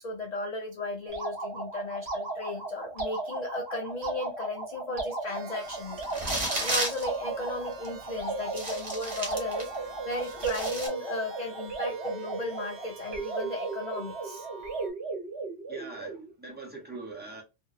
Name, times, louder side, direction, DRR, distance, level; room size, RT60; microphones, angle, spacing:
voice 1, 0.0-6.1 6.6-14.5, left 2 dB, 80° left, 0.3 m, -36 dB
sound 1, 1.1-16.3, right 3 dB, 55° right, 1.1 m, -36 dB
sound 2, 5.3-14.9, right 4 dB, 75° right, 1.0 m, -47 dB
sound 3, 6.0-7.1 7.8-7.9 8.5-9.8 10.1-10.9, right 1 dB, 35° right, 1.1 m, -32 dB
voice 2, 15.7-17.4, right 3 dB, 10° right, 0.7 m, -42 dB
2.6 x 2.5 x 2.4 m
omnidirectional pair, 1.3 m